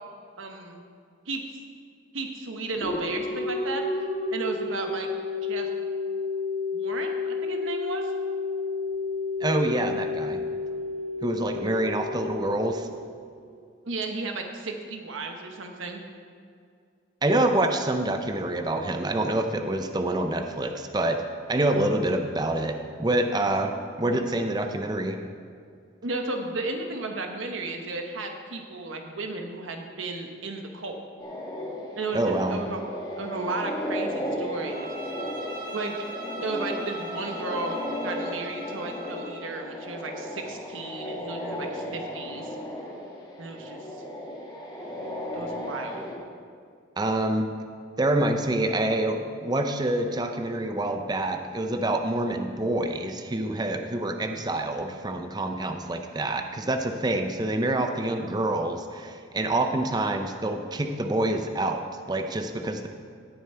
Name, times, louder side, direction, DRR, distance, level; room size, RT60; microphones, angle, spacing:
voice 1, 0.4-0.8 1.3-1.4 2.1-3.8 4.3-5.1 5.5-5.7 6.7-8.1 13.8-16.0 26.0-31.0 32.0-32.8 33.2-34.9 35.7-36.0 36.4-42.6 43.4-44.0 45.3-46.0, right 3 dB, 85° right, 3 dB, 1.0 m, -34 dB
sound 1, 2.8-13.4, left 4 dB, 50° left, 1.7 m, -31 dB
voice 2, 9.4-10.4 11.2-12.9 17.2-23.7 24.0-25.2 32.1-32.6 47.0-47.5 48.0-62.9, right 1 dB, 20° right, 5 dB, 0.5 m, -26 dB
sound 2, 31.2-46.1, equal, 20° left, 1.8 m, -35 dB
Bowed string instrument, 34.6-39.5, right 2 dB, 45° right, 1.1 m, -40 dB
17.5 x 7.0 x 4.4 m, 2.3 s
head